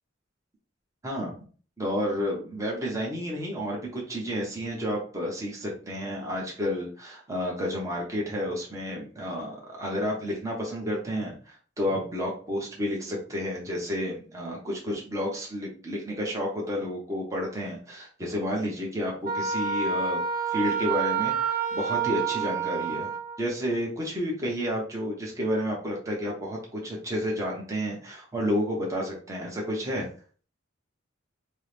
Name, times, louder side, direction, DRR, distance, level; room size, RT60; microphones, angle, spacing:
voice 1, 1.0-1.4 1.8-20.2 20.5-23.1 23.4-30.1, equal, 15° right, -2 dB, 0.8 m, -31 dB
Wind instrument woodwind instrument, 19.2-23.4, right 6 dB, 45° right, 0.4 m, -28 dB
4.3 x 2.1 x 3.3 m, 0.41 s
head